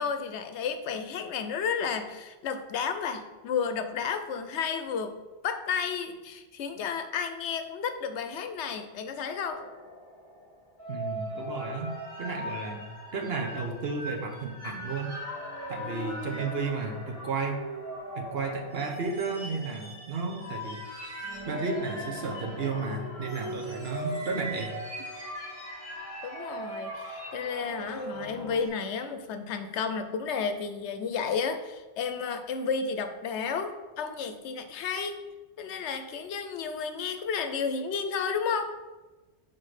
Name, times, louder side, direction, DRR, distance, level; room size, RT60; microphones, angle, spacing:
voice 1, 0.0-5.2 5.4-9.6 26.2-35.2 35.6-38.7, left 6 dB, 80° left, 8 dB, 0.9 m, -32 dB
sound 1, 9.5-28.7, equal, 45° left, 2.2 m, -39 dB
voice 2, 10.9-12.8 13.1-15.2 15.7-17.7 18.1-20.8 21.5-24.8, right 4 dB, 65° right, 2 dB, 1.1 m, -33 dB
5.9 x 4.3 x 4.9 m, 1.2 s
omnidirectional pair, 1.2 m